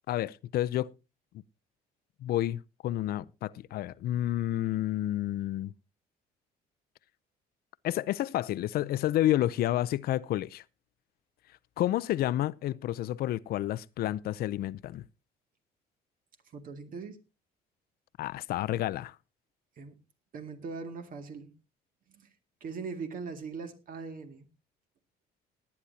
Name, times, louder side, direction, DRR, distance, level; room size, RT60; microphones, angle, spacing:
voice 1, 0.1-0.9 2.2-5.7 7.8-10.6 11.8-15.0 18.2-19.1, left 13 dB, 65° left, 0.5 m, -30 dB
voice 2, 16.5-17.2 19.8-20.0 20.3-21.5 22.1-22.3 22.6-24.5, right 5 dB, 55° right, 2.2 m, -40 dB
19.0 x 9.8 x 2.8 m
cardioid pair, 110°, 17 cm